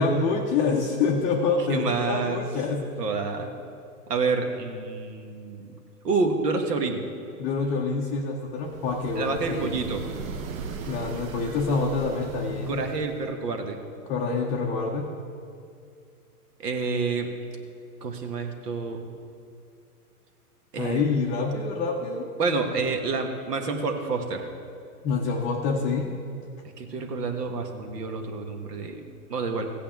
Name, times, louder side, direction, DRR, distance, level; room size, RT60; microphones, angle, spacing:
voice 1, 0.0-3.0 7.4-9.8 10.9-12.8 14.1-15.1 20.8-22.3 25.0-26.1, left 4 dB, 20° left, -2 dB, 0.5 m, -26 dB
voice 2, 1.7-2.4 3.0-3.5 4.1-5.7 6.0-7.0 9.2-10.0 12.7-13.8 16.6-17.3 18.0-19.1 20.7-21.1 22.4-24.5 26.8-29.7, right 4 dB, 85° right, 4 dB, 1.5 m, -28 dB
sound 1, 8.6-13.4, right 5 dB, 60° right, 1.0 m, -38 dB
15.5 x 8.6 x 3.6 m, 2.4 s
hypercardioid pair, 135°, 46 cm